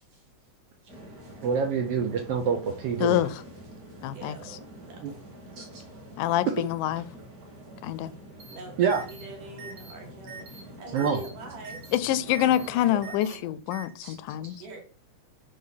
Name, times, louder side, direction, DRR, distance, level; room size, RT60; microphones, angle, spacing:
sound 1, 0.9-13.1, equal, 35° right, 2.0 m, -46 dB
voice 1, 1.4-3.2 5.0-5.1 5.6-5.8 6.5-6.6 8.8-9.0 10.9-11.2 13.2-13.3 14.0-14.2 14.4-14.6, right 6 dB, 90° right, 1.3 m, -27 dB
voice 2, 3.0-3.4 4.0-4.4 6.2-7.1 7.8-8.1 11.9-14.6, left 12 dB, 80° left, 2.0 m, -26 dB
voice 3, 4.1-5.3 8.5-13.5 14.6-14.8, right 3 dB, 75° right, 3.7 m, -45 dB
sound 2, 8.4-8.5 8.9-9.2 9.6-9.9 10.3-10.6 11.0-11.3 11.6-12.0 12.3-12.7 13.0-13.3 13.7-13.8, right 4 dB, 60° right, 3.5 m, -43 dB
9.5 x 3.6 x 5.6 m
omnidirectional pair, 3.7 m